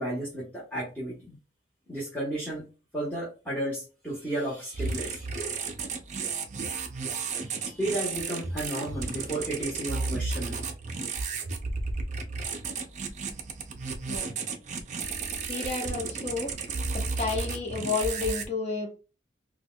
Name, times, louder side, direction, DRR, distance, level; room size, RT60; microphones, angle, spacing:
voice 1, 0.0-1.4 1.9-2.7 2.9-5.3 7.2-10.6, right 1 dB, 10° left, -7 dB, 1.1 m, -33 dB
sound 1, 4.7-18.4, right 4 dB, 40° right, 0.5 m, -33 dB
voice 2, 15.5-16.5 16.9-18.9, left 4 dB, 35° left, 2 dB, 0.8 m, -31 dB
4.3 x 2.3 x 2.2 m, 0.32 s
head